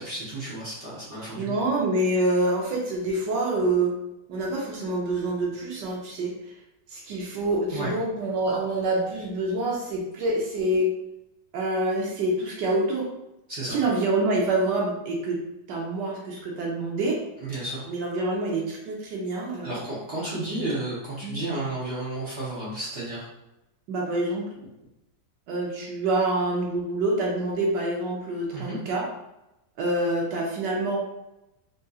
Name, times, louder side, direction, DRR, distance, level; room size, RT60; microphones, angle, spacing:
voice 1, 0.0-1.6 7.7-7.9 13.5-13.8 17.4-17.9 19.6-23.3 28.5-28.8, right 2 dB, 50° right, -8 dB, 0.9 m, -32 dB
voice 2, 1.3-4.0 4.3-6.5 6.9-10.9 11.5-13.1 13.7-15.4 15.7-17.2 17.9-19.8 21.2-21.4 23.9-24.5 25.5-29.1 29.8-31.0, right 2 dB, 70° right, -2 dB, 1.2 m, -26 dB
3.7 x 2.6 x 2.3 m, 0.92 s
omnidirectional pair, 2.1 m